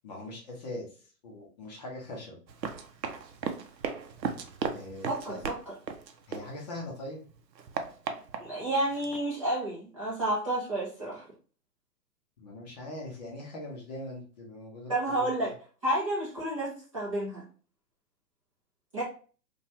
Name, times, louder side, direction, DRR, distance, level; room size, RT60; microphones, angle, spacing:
voice 1, 0.0-2.4 4.7-5.5 6.3-7.2 12.4-15.5, left 1 dB, 25° left, -2 dB, 0.6 m, -41 dB
Run, 2.5-6.9 7.3-9.2, right 6 dB, 90° right, 0.6 m, -37 dB
voice 2, 5.1-5.5 8.4-11.2 14.9-15.5 15.8-17.4 18.9-19.0, right 1 dB, 20° right, -7 dB, 0.4 m, -30 dB
2.7 x 2.3 x 2.7 m, 0.40 s
figure-of-eight pair, 125°, 49 cm